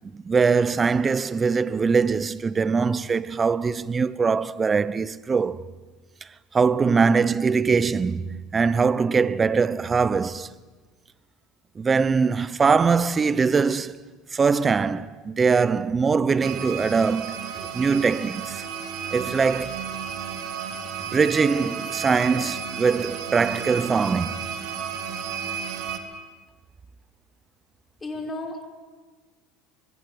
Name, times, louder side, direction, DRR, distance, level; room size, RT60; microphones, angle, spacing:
voice 1, 0.1-5.7 6.5-10.5 11.8-14.0 14.3-18.6 19.1-19.8 21.1-24.6, right 5 dB, 20° right, 0.8 m, -22 dB
sound 1, 16.4-26.0, right 7 dB, 60° right, 3.0 m, -33 dB
voice 2, 28.0-28.6, left 2 dB, 15° left, 5.3 m, -33 dB
25.0 x 22.0 x 9.7 m
supercardioid pair, 120°, 0 cm